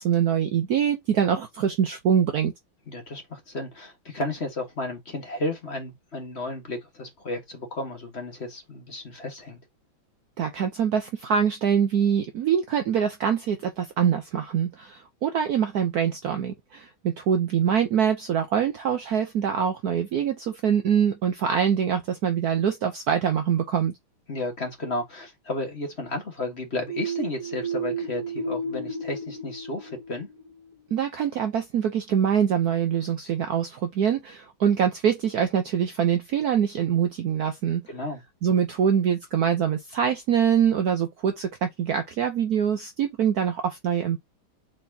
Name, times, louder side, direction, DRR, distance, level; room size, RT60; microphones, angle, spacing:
voice 1, 0.0-2.5 10.4-23.9 30.9-37.8 38.4-44.2, right 8 dB, 65° right, 1.0 m, -24 dB
voice 2, 2.9-9.6 24.3-30.3 37.9-38.2, left 2 dB, 35° left, 1.3 m, -33 dB
sound 1, 26.9-30.5, right 3 dB, 60° left, 0.4 m, -32 dB
4.6 x 4.2 x 2.7 m
omnidirectional pair, 2.2 m